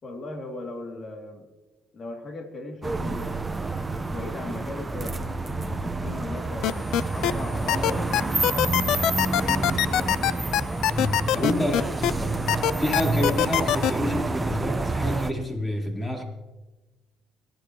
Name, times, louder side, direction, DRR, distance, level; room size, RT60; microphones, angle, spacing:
voice 1, 0.0-1.5 1.9-5.3 5.7-8.1 8.3-10.2 11.3-12.4, left 2 dB, 45° left, 2 dB, 2.7 m, -38 dB
sound 1, 2.8-15.3, right 2 dB, 20° right, 1.0 m, -28 dB
sound 2, 6.6-7.3 7.7-12.1 12.5-13.9, left 12 dB, 75° left, 0.4 m, -22 dB
voice 2, 10.9-11.9 12.8-16.2, left 1 dB, 20° left, 0 dB, 3.7 m, -28 dB
30.0 x 10.5 x 3.1 m, 1.2 s
supercardioid pair, 85°, 0 cm